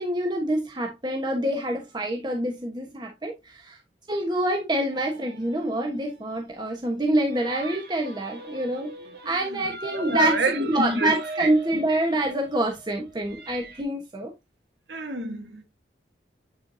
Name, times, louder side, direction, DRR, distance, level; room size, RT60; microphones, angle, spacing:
voice 1, 0.0-3.8 4.1-8.9 9.2-14.3, right 1 dB, 25° right, 1.2 m, -26 dB
sound 1, 4.9-13.8, right 2 dB, 60° right, 1.8 m, -42 dB
voice 2, 9.4-11.1 11.4-11.8 14.9-15.6, right 2 dB, 85° right, 1.5 m, -29 dB
9.4 x 4.6 x 2.7 m
head